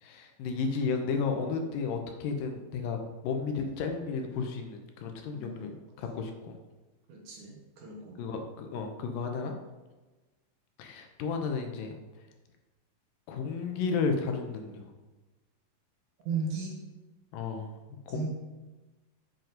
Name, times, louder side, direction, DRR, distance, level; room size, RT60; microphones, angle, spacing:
voice 1, 0.0-5.7 6.0-6.6 8.2-9.5 10.8-12.0 13.3-14.8 17.3-17.7 18.1-18.3, left 5 dB, 75° left, 4 dB, 2.4 m, -33 dB
voice 2, 5.3-5.7 7.1-8.2 16.2-16.8 18.1-18.3, right 4 dB, 65° right, -1 dB, 2.6 m, -36 dB
7.6 x 5.2 x 5.1 m, 1.2 s
omnidirectional pair, 4.1 m